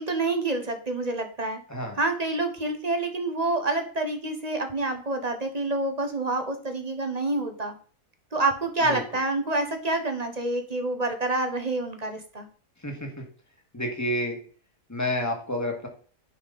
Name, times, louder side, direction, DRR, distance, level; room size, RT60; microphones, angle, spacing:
voice 1, 0.0-1.6 2.0-7.7 8.3-12.4, right 2 dB, 25° right, 5 dB, 1.2 m, -27 dB
voice 2, 1.7-2.0 8.8-9.0 12.8-13.2 13.7-14.4 14.9-15.9, left 1 dB, 10° left, 2 dB, 2.0 m, -29 dB
10.5 x 5.6 x 4.2 m, 0.43 s
omnidirectional pair, 1.7 m